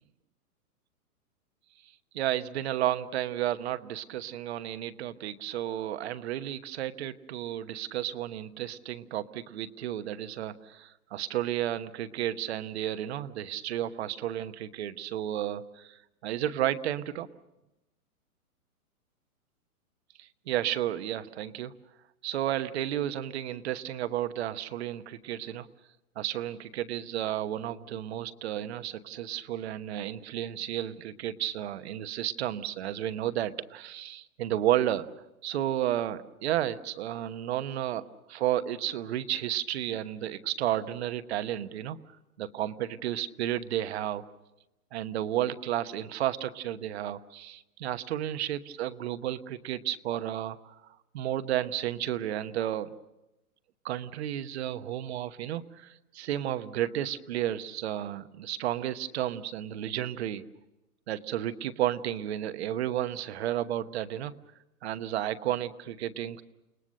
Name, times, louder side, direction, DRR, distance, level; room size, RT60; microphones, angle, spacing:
voice 1, 2.1-17.3 20.2-21.7 22.2-25.7 26.2-35.1 35.4-38.0 38.3-42.0 42.4-44.2 44.9-50.7 51.1-52.9 53.8-60.4 61.1-64.3 64.8-66.4, right 12 dB, 45° right, 11 dB, 1.1 m, -32 dB
30.0 x 19.0 x 6.5 m, 0.95 s
hypercardioid pair, 155°, 45 cm